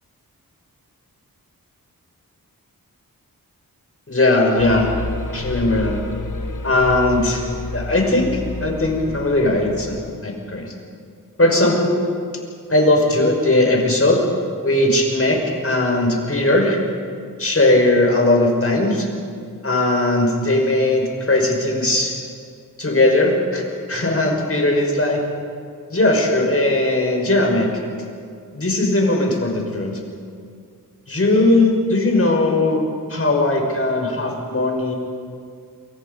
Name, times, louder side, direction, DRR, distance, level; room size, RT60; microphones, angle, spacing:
voice 1, 4.1-4.9 5.3-6.0 6.6-7.4 7.7-10.7 11.4-11.9 12.7-14.2 14.6-16.8 17.4-19.1 19.6-22.1 22.8-23.6 23.9-25.2 25.9-27.7 28.5-30.0 31.1-32.8 33.1-34.9, left 2 dB, 40° left, 1 dB, 5.7 m, -18 dB
sound 1, 4.6-10.3, left 3 dB, 60° left, 1.3 m, -30 dB
28.0 x 24.5 x 5.5 m, 2.2 s
wide cardioid pair, 90°, 36 cm